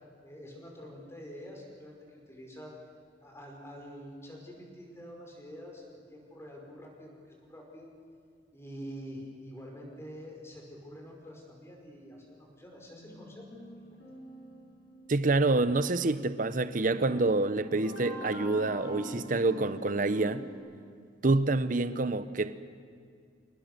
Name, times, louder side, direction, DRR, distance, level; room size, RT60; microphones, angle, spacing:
voice 1, 0.2-2.7 3.2-7.9 8.5-13.4, equal, 15° left, 4.9 m, -46 dB
sound 1, 12.9-15.3 16.8-20.6, equal, 80° left, 7.9 m, -43 dB
voice 2, 15.1-20.5 21.2-22.5, right 2 dB, 50° right, 0.8 m, -27 dB
28.0 x 19.5 x 6.8 m
head